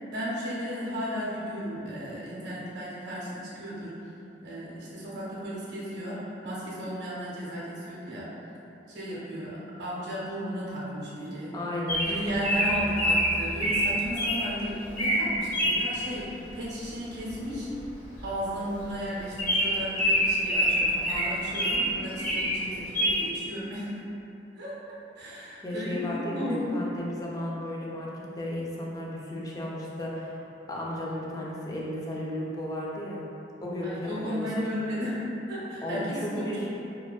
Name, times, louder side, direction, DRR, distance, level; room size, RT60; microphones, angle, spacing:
voice 1, 0.1-4.0 4.4-8.3 8.9-11.6 12.1-17.7 18.2-23.9 24.5-24.8 25.1-26.7 33.8-36.7, equal, 65° right, -7 dB, 0.6 m, -34 dB
voice 2, 11.5-12.4 25.2-30.4 30.7-33.3 33.6-34.7 35.8-36.7, left 1 dB, 20° left, -4 dB, 0.3 m, -34 dB
Bird vocalization bird call bird song, 11.9-14.4 14.9-15.2 15.5-15.8 17.3-17.5 17.8-17.9 18.2-18.3 18.8-18.9 19.4-21.8 22.2-22.5 22.9-23.2, equal, 50° left, 1.0 m, -25 dB
2.4 x 2.2 x 2.3 m, 2.8 s
head